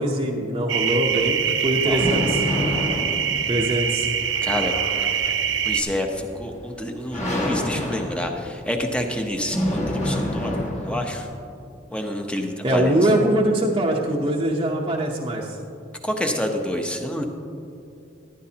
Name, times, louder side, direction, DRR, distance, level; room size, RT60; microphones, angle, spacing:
voice 1, 0.0-2.4 3.5-4.1 12.6-15.6, right 1 dB, 25° right, -2 dB, 0.8 m, -22 dB
sound 1, 0.7-5.8, right 8 dB, 70° right, 0.7 m, -24 dB
sound 2, 0.8-11.2, left 1 dB, 35° left, 1.5 m, -29 dB
voice 2, 4.4-4.7 5.6-11.3 11.9-13.0 16.0-17.2, left 1 dB, 5° left, 3 dB, 0.9 m, -28 dB
14.0 x 11.5 x 2.9 m, 2.6 s
head